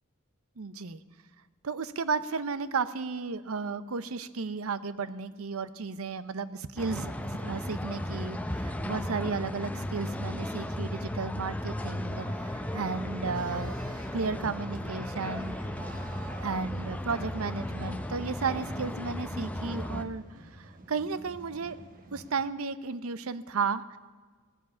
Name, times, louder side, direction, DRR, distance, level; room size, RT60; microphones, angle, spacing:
voice 1, 0.6-1.0 1.6-13.8 14.1-15.6 16.4-20.2 20.6-21.8 22.1-24.0, right 4 dB, 75° right, 15 dB, 0.7 m, -33 dB
sound 1, 6.8-20.0, left 1 dB, 5° left, 0.6 m, -35 dB
sound 2, 12.1-22.4, right 2 dB, 40° right, 1.2 m, -50 dB
16.5 x 7.5 x 8.4 m, 1.4 s
head